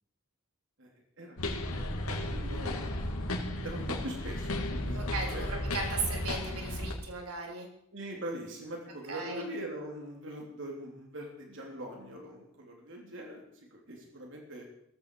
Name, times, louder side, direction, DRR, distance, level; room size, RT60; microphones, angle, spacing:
voice 1, 1.2-2.8 3.6-5.5 7.9-14.6, right 1 dB, 55° right, 0 dB, 3.2 m, -42 dB
sound 1, 1.4-6.9, left 1 dB, 80° left, 2.5 m, -34 dB
voice 2, 4.9-7.7 9.1-9.4, right 4 dB, 85° right, 1 dB, 3.5 m, -37 dB
17.0 x 14.5 x 4.8 m, 0.73 s
head